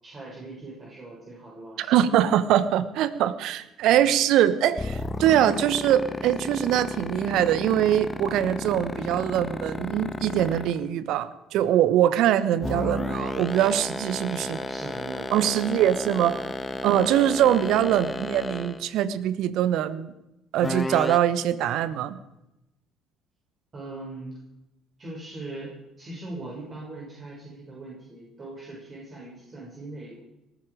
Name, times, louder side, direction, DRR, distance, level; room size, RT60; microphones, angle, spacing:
voice 1, 0.0-2.1 12.5-12.7 14.1-16.7 17.8-18.1 23.7-24.4 25.0-30.2, right 2 dB, 35° right, -4 dB, 6.6 m, -41 dB
voice 2, 1.8-14.6 15.3-16.4 16.8-20.1 20.5-22.2, right 11 dB, 60° right, 15 dB, 1.1 m, -23 dB
sound 1, 4.8-10.9 12.6-18.9 20.6-21.2, left 2 dB, 20° left, 1.4 m, -31 dB
19.0 x 13.5 x 5.1 m, 0.90 s
hypercardioid pair, 55°, 0 cm